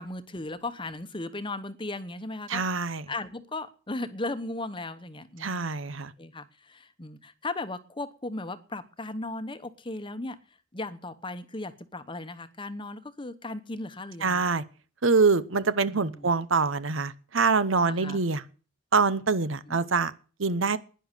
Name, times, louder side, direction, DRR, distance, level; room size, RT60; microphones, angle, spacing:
voice 1, 0.0-2.6 3.1-5.6 6.2-10.4 10.7-14.4 15.9-16.3 17.9-18.2 19.7-19.8, left 2 dB, 25° left, 11 dB, 1.0 m, -36 dB
voice 2, 2.5-3.0 5.4-6.1 14.2-14.6 15.0-18.4 18.9-20.1 20.4-20.8, right 4 dB, 75° right, 15 dB, 0.9 m, -25 dB
11.0 x 10.0 x 8.2 m, 0.38 s
head